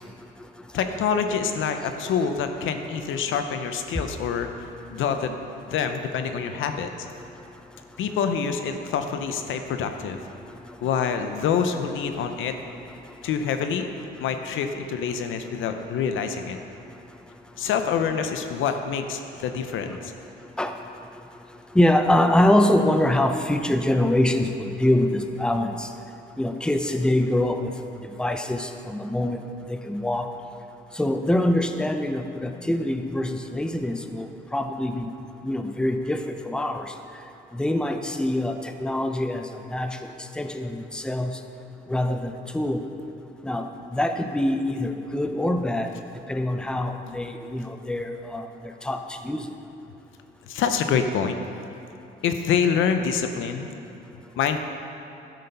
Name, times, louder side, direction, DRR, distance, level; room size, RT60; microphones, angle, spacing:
voice 1, 0.7-5.4 5.7-6.9 8.0-10.2 10.8-12.5 13.2-13.9 14.2-16.6 17.6-20.1 50.5-51.4 52.2-53.7 54.4-54.6, left 7 dB, 80° left, 7 dB, 0.8 m, -26 dB
voice 2, 21.7-25.9 26.4-27.7 28.0-29.4 29.7-30.3 30.9-35.1 35.4-36.9 37.5-41.4 41.9-42.8 43.4-45.9 46.3-49.5, left 1 dB, 5° left, 6 dB, 0.6 m, -24 dB
12.0 x 6.6 x 5.5 m, 2.7 s
cardioid pair, 90°, 20 cm